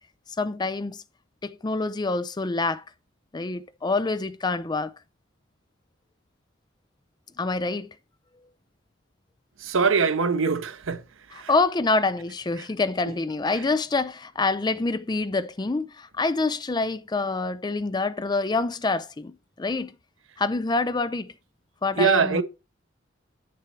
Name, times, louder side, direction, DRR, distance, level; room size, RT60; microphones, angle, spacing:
voice 1, 0.4-1.0 1.4-2.8 3.3-4.9 7.4-7.9 11.5-19.9 20.4-21.3 21.8-22.4, left 3 dB, 20° left, 0.4 m, -26 dB
voice 2, 9.6-11.0 11.3-11.5 22.0-22.4, right 5 dB, 85° right, 0.8 m, -22 dB
8.1 x 6.8 x 4.5 m
head